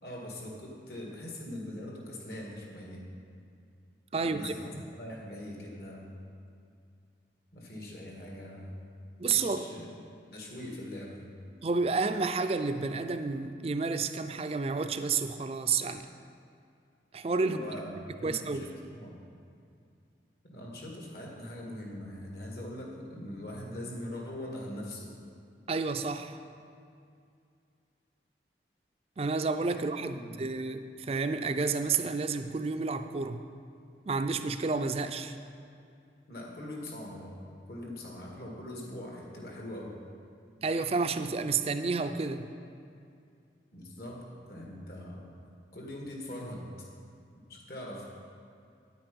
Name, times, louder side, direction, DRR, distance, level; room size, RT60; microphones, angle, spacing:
voice 1, 0.0-3.1 4.2-6.1 7.5-8.7 9.2-10.0 10.3-11.3 17.4-17.9 18.2-19.2 20.4-25.1 30.1-30.5 36.3-37.4 37.7-40.0 43.7-45.3 45.7-46.7 47.5-48.0, left 1 dB, 60° left, -1 dB, 1.9 m, -42 dB
voice 2, 4.1-4.8 9.2-9.7 11.6-16.1 17.1-17.6 18.2-18.7 25.7-26.4 29.2-33.4 34.1-35.4 40.6-42.5, right 4 dB, 35° right, 9 dB, 0.4 m, -30 dB
9.0 x 9.0 x 5.2 m, 2.4 s
head